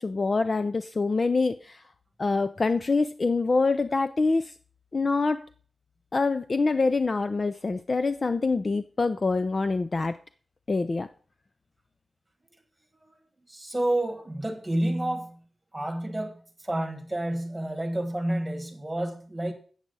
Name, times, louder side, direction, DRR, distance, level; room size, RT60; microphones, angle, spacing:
voice 1, 0.0-1.8 2.2-4.5 4.9-5.4 6.1-10.2 10.7-11.1, left 3 dB, 30° left, 11 dB, 0.3 m, -25 dB
voice 2, 13.5-15.4 15.7-19.5, right 1 dB, 5° right, 3 dB, 1.6 m, -30 dB
8.7 x 7.3 x 5.3 m, 0.44 s
wide cardioid pair, 175°, 0 cm